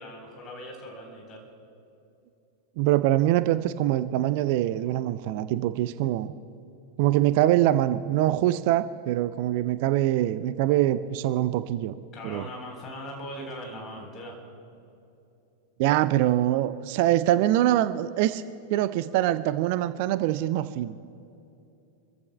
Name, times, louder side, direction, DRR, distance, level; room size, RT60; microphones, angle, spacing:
voice 1, 0.0-1.5 12.1-14.4, equal, 30° left, 1 dB, 3.9 m, -40 dB
voice 2, 2.8-6.3 7.0-11.9 12.2-12.5 15.8-18.4 18.7-20.9, right 13 dB, 45° right, 13 dB, 0.4 m, -24 dB
29.0 x 15.0 x 2.3 m, 2.7 s
figure-of-eight pair, 90°, 0 cm